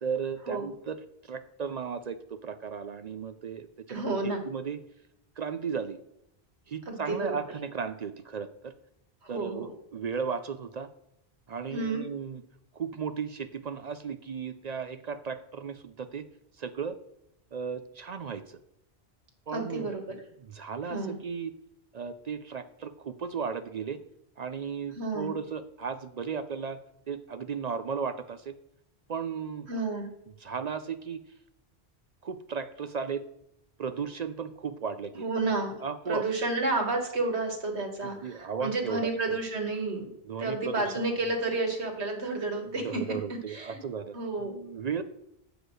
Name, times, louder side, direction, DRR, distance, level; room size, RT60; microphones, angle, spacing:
voice 1, 0.0-4.8 5.4-6.0 6.7-8.7 9.3-10.9 11.5-12.4 12.7-16.2 16.6-17.0 17.5-18.6 19.5-21.5 21.9-24.0 24.4-26.8 27.1-28.6 29.1-29.7 30.4-31.2 32.2-33.2 33.8-35.3 35.8-36.2 38.0-39.3 40.3-41.2 42.7-45.0, right 6 dB, 50° right, 10 dB, 0.5 m, -35 dB
voice 2, 3.9-4.4 6.9-7.4 9.2-9.7 11.7-12.0 19.5-20.0 20.8-21.2 25.0-25.3 29.7-30.1 35.1-35.7 36.1-40.1 40.4-43.0 43.5-43.8 44.1-44.5, right 2 dB, 90° right, 2 dB, 2.0 m, -31 dB
8.1 x 4.9 x 6.2 m, 0.78 s
omnidirectional pair, 1.1 m